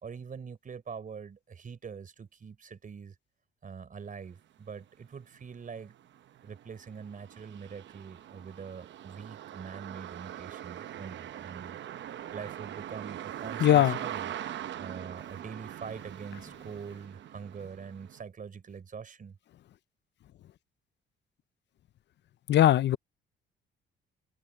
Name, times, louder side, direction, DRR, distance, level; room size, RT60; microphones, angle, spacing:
voice 1, 0.0-3.2 3.6-5.9 6.4-11.8 12.3-14.3 14.8-19.4, right 6 dB, 45° right, 4.1 m, -44 dB
sound 1, 4.8-4.9 5.3-18.2, right 11 dB, 65° right, 0.9 m, -42 dB
voice 2, 13.6-14.0 22.5-23.0, left 12 dB, 60° left, 0.6 m, -20 dB
cardioid pair, 90°, 20 cm